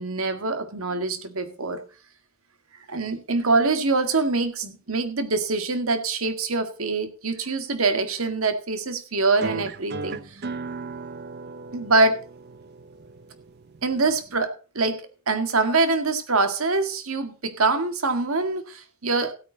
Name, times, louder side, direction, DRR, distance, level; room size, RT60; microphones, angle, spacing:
voice 1, 0.0-1.8 2.9-10.4 11.7-12.2 13.8-19.3, right 3 dB, 80° right, 8 dB, 1.8 m, -24 dB
sound 1, 9.4-14.4, right 4 dB, 50° right, 0.8 m, -36 dB
16.0 x 8.9 x 4.0 m, 0.36 s
head